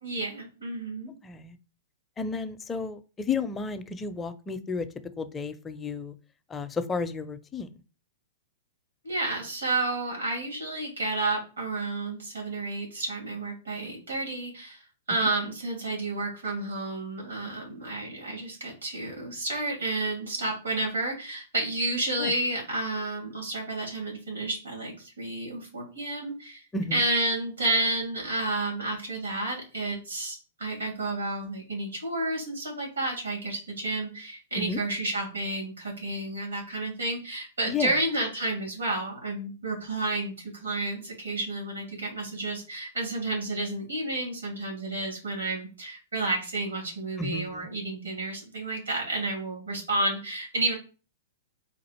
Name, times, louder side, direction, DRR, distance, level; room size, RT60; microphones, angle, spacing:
voice 1, 0.0-1.1 9.0-14.8 15.1-26.6 26.9-50.7, right 2 dB, 85° right, -1 dB, 2.4 m, -31 dB
voice 2, 1.2-1.6 2.2-4.9 5.2-6.1 6.5-7.7 22.2-22.3 26.7-27.0 34.6-34.8 37.7-38.0 47.2-47.7, left 4 dB, 15° left, 10 dB, 0.4 m, -32 dB
4.1 x 2.5 x 4.3 m, 0.36 s
hypercardioid pair, 110°, 0 cm